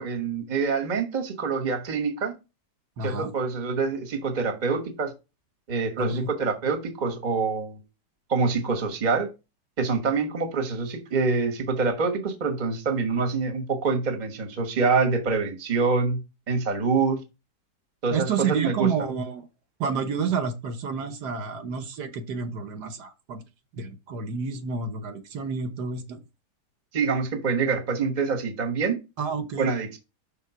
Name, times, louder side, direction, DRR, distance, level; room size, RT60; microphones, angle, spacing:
voice 1, 0.0-2.4 3.0-5.1 5.7-7.8 8.3-9.3 9.8-16.2 16.5-17.2 18.0-18.9 26.9-29.0 29.6-30.0, right 4 dB, 30° right, 1.1 m, -26 dB
voice 2, 3.0-3.3 6.0-6.3 18.1-19.5 19.8-23.4 23.7-26.2 29.2-29.7, right 5 dB, 75° right, 1.5 m, -29 dB
5.8 x 3.6 x 5.8 m
omnidirectional pair, 1.8 m